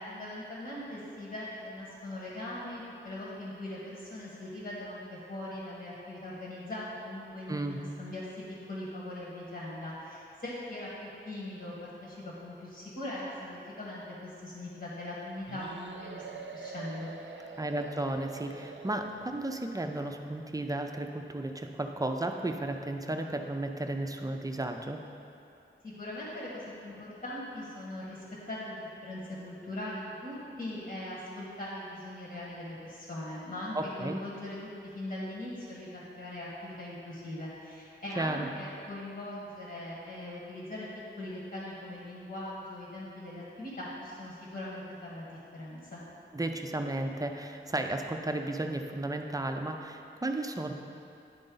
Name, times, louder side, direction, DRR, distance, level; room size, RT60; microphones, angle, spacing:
voice 1, 0.0-16.2 16.5-17.1 25.8-34.6 34.9-40.9 41.2-46.0, left 1 dB, 55° left, -7 dB, 1.5 m, -40 dB
voice 2, 7.5-7.8 17.6-25.0 33.7-34.2 38.2-38.5 46.3-50.7, right 2 dB, 20° right, 4 dB, 0.4 m, -34 dB
sound 1, 15.5-19.7, right 4 dB, 70° right, 0.5 m, -45 dB
9.9 x 3.9 x 3.8 m, 2.7 s
wide cardioid pair, 85°, 20 cm